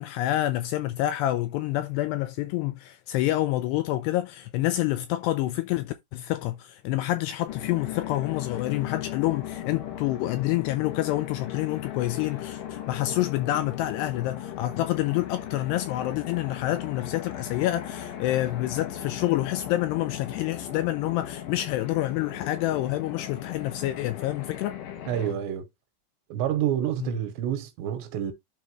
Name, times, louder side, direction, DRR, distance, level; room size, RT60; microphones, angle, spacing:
voice 1, 0.0-24.8 27.0-27.1, left 15 dB, 85° left, 2.5 m, -28 dB
sound 1, 7.5-25.3, left 10 dB, 65° left, 2.3 m, -37 dB
voice 2, 25.1-25.7 26.3-28.3, right 10 dB, 80° right, 3.2 m, -28 dB
11.5 x 4.5 x 3.0 m
omnidirectional pair, 5.2 m